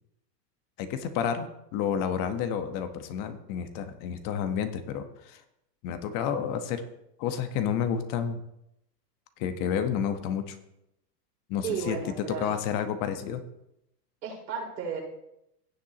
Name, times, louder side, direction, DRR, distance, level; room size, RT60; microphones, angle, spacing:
voice 1, 0.8-5.4 5.8-6.8 7.2-8.4 9.4-10.6 11.5-12.0 12.3-13.4, left 8 dB, 40° left, 8 dB, 1.2 m, -30 dB
voice 2, 11.6-12.5 14.2-15.0, right 6 dB, 85° right, -3 dB, 4.7 m, -33 dB
16.5 x 7.4 x 2.9 m, 0.81 s
hypercardioid pair, 130°, 50 cm